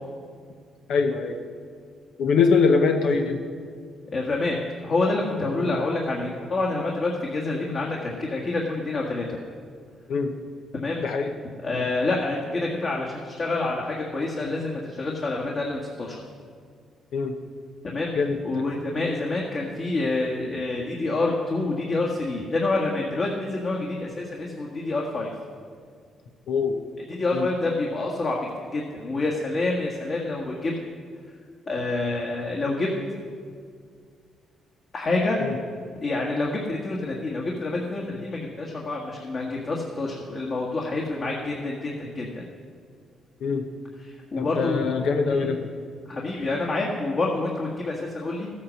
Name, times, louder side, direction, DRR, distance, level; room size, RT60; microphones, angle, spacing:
voice 1, 0.9-1.4 2.2-3.4 5.6-5.7 10.1-10.3 11.0-11.3 17.1-17.3 18.2-18.6 26.5-26.8 27.3-27.5 35.4-35.6 43.4-43.7 44.4-45.7, left 5 dB, 80° left, 4 dB, 0.9 m, -23 dB
voice 2, 4.1-4.6 4.8-9.4 10.7-11.0 11.6-16.2 17.9-18.1 18.4-25.3 27.1-30.7 31.7-32.9 34.9-35.4 36.0-42.3 44.0-44.9 45.3-45.5 46.1-48.5, left 2 dB, 45° left, -2 dB, 1.7 m, -27 dB
14.0 x 8.6 x 6.4 m, 2.1 s
cardioid pair, 90°, 0 cm